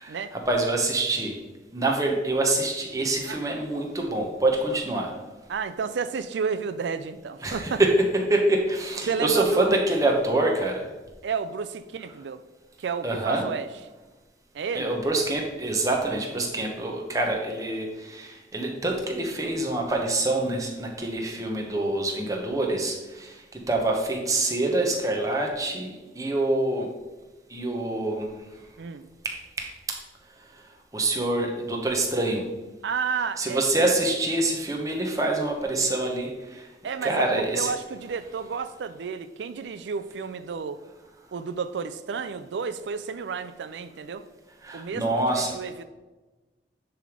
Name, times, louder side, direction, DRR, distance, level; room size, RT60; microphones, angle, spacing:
voice 1, 0.0-1.4 1.7-5.1 7.4-10.8 13.0-13.5 14.7-26.9 27.5-28.3 29.2-30.0 30.9-32.5 33.4-36.6 37.0-37.7 44.6-45.6, right 2 dB, 20° right, 1 dB, 1.0 m, -26 dB
voice 2, 5.5-7.8 9.0-9.8 11.2-12.4 12.8-13.7 14.5-14.9 28.8-29.1 32.8-33.9 36.8-40.8 41.3-44.3 44.7-45.8, right 5 dB, 85° right, 11 dB, 0.4 m, -31 dB
10.0 x 3.4 x 5.1 m, 1.2 s
head